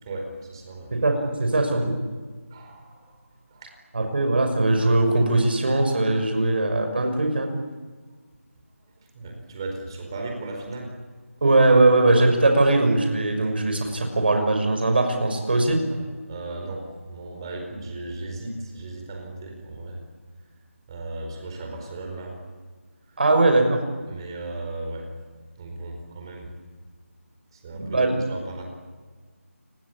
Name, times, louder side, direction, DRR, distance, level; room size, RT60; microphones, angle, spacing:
voice 1, 0.0-0.9 2.5-3.2 3.5-4.1 9.1-10.9 15.5-20.0 20.9-22.4 24.1-25.1 25.6-26.5 27.5-28.6, right 2 dB, 20° right, 3 dB, 4.5 m, -36 dB
voice 2, 0.9-2.0 3.9-7.5 11.4-15.8 23.2-23.8 27.8-28.2, right 2 dB, 45° right, 6 dB, 6.2 m, -20 dB
28.5 x 21.0 x 8.8 m, 1.4 s
figure-of-eight pair, 170°, 8 cm